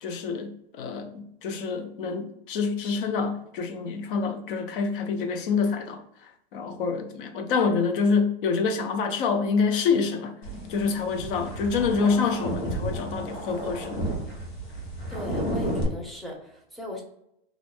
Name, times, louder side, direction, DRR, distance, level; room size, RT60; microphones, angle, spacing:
voice 1, 0.0-10.4 10.7-14.0, left 5 dB, 55° left, 0.6 m, -27 dB
sound 1, 10.4-15.8, right 1 dB, 90° left, 1.0 m, -32 dB
voice 2, 15.1-17.0, left 1 dB, ahead, 0.6 m, -37 dB
2.4 x 2.1 x 3.3 m
hypercardioid pair, 110°, 31 cm